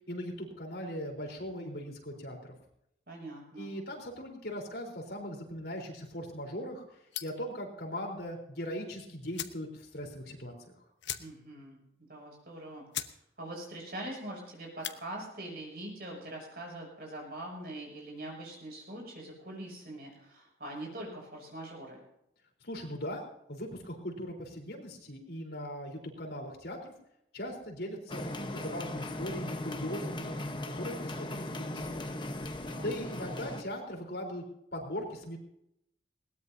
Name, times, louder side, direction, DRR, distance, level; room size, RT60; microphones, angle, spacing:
voice 1, 0.1-2.5 3.6-6.8 7.2-10.5 22.6-23.2 23.5-26.9 27.3-30.4 30.8-32.0 32.8-34.4 34.7-35.4, equal, 70° left, 1 dB, 4.0 m, -39 dB
voice 2, 3.1-3.7 11.2-11.8 12.1-12.9 13.4-22.0 32.7-33.0, right 1 dB, 55° right, 0 dB, 7.2 m, -43 dB
sound 1, 7.1-7.5 8.8-8.9 9.3-9.7 10.0-10.1 10.4-10.5 11.0-11.6 12.0-12.1 12.5-12.6 12.9-13.2 13.5-13.9 14.6-15.0, left 11 dB, 90° left, 1.0 m, -39 dB
sound 2, 28.1-33.6, left 1 dB, 25° left, 1.1 m, -38 dB
21.0 x 18.0 x 2.8 m, 0.80 s
head